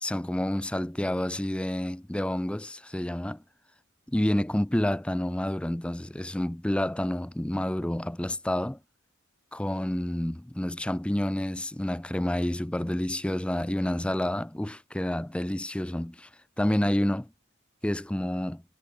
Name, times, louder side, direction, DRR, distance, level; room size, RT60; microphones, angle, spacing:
voice 1, 0.0-3.4 4.1-8.8 9.5-16.3 16.6-17.3 17.8-18.6, left 1 dB, 5° left, 0.4 m, -29 dB
head